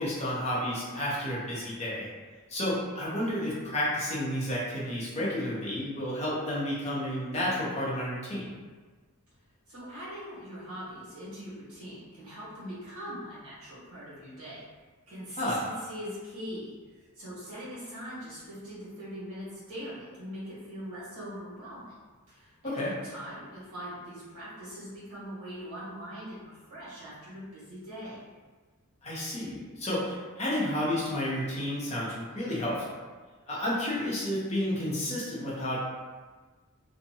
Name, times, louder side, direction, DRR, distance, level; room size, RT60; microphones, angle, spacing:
voice 1, 0.0-2.1 2.5-8.5 15.4-15.7 22.6-22.9 29.0-33.0 33.5-35.8, left 1 dB, 30° left, -7 dB, 0.6 m, -31 dB
voice 2, 9.7-14.6 15.1-21.9 22.3-28.2, equal, 75° right, -9 dB, 1.3 m, -42 dB
2.6 x 2.1 x 2.6 m, 1.4 s
head